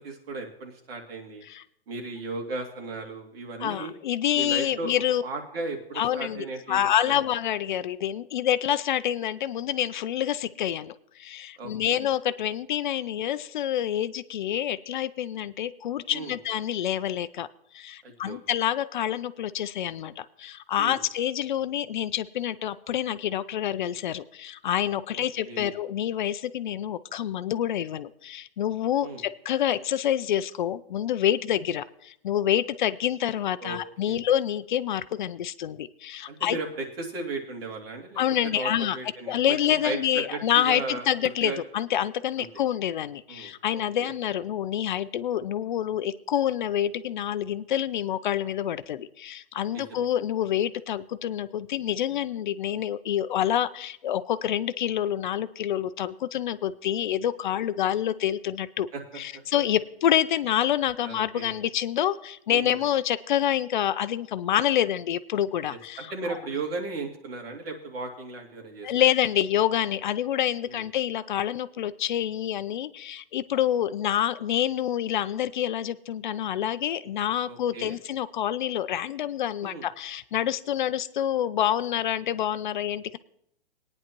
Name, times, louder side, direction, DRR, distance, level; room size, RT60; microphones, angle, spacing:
voice 1, 0.0-1.4 1.9-3.9 4.3-7.1 11.6-12.0 16.1-16.4 18.0-18.4 20.8-21.0 25.1-25.7 29.0-29.2 33.6-33.8 34.0-34.2 36.3-38.2 38.5-41.6 42.4-42.5 43.3-43.5 44.0-44.1 49.7-50.1 58.9-59.0 61.0-61.6 62.5-62.8 65.7-68.9 70.7-70.8 77.4-78.0 79.6-79.9, right 3 dB, 70° right, 2 dB, 2.7 m, -36 dB
voice 2, 3.6-5.2 6.0-17.5 17.7-36.6 38.2-39.0 39.3-58.9 59.2-66.4 68.8-83.2, left 11 dB, 50° left, 15 dB, 0.5 m, -27 dB
19.0 x 9.7 x 3.0 m, 0.74 s
hypercardioid pair, 155°, 30 cm